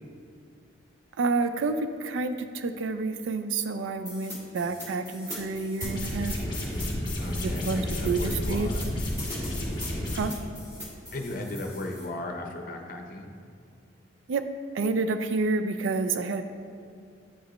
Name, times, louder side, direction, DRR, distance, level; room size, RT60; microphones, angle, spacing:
voice 1, 1.2-6.4 7.4-8.7 10.1-10.3 14.3-14.4 14.7-16.4, right 3 dB, 80° right, 9 dB, 0.4 m, -29 dB
sound 1, 4.0-12.0, left 1 dB, 15° right, 1.7 m, -42 dB
sound 2, 5.8-10.2, left 1 dB, 25° left, 1.2 m, -31 dB
voice 2, 7.2-8.8 10.2-10.4 11.1-13.3, left 2 dB, 45° left, 3 dB, 0.6 m, -37 dB
8.9 x 5.0 x 3.0 m, 2.3 s
head